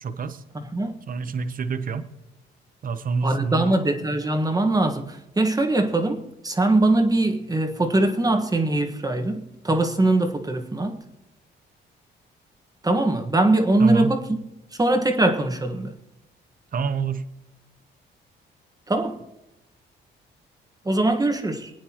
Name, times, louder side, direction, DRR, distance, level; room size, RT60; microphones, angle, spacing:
voice 1, 0.0-0.4 1.1-2.1 2.8-3.8 13.8-14.2 16.7-17.3, right 5 dB, 45° right, 1.0 m, -27 dB
voice 2, 3.2-11.0 12.8-14.2 14.7-15.9 18.9-19.2 20.8-21.7, right 2 dB, 20° right, 1.5 m, -22 dB
24.0 x 9.4 x 3.0 m
cardioid pair, 90°, 20 cm